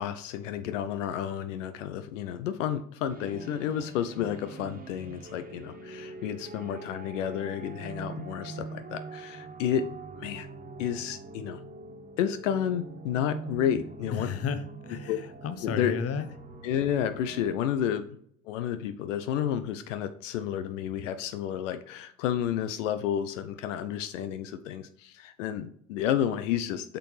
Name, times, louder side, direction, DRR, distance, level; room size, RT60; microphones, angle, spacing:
voice 1, 0.0-9.9 10.2-10.5 10.8-11.6 12.2-14.3 15.1-15.2 15.6-16.0 16.6-18.1 18.5-27.0, left 9 dB, 80° left, 10 dB, 0.5 m, -31 dB
sound 1, 3.1-17.6, right 3 dB, 25° right, 1.5 m, -43 dB
voice 2, 14.1-16.3, left 6 dB, 40° left, 11 dB, 0.8 m, -33 dB
6.6 x 5.9 x 3.2 m, 0.64 s
hypercardioid pair, 70°, 37 cm